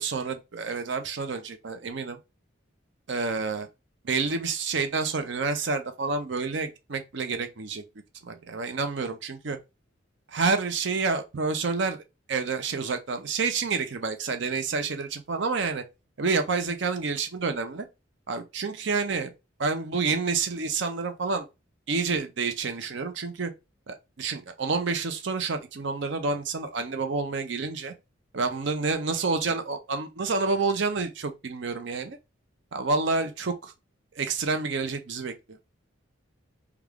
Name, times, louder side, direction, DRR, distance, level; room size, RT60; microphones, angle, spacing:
voice 1, 0.0-2.2 3.1-3.7 4.0-7.8 8.2-9.6 10.3-12.0 12.3-15.8 16.2-17.9 18.3-19.3 19.6-21.5 21.9-23.5 23.9-27.9 28.3-32.2 32.7-33.7 34.2-35.6, right 4 dB, 55° right, 0.5 m, -28 dB
3.4 x 2.3 x 3.5 m
head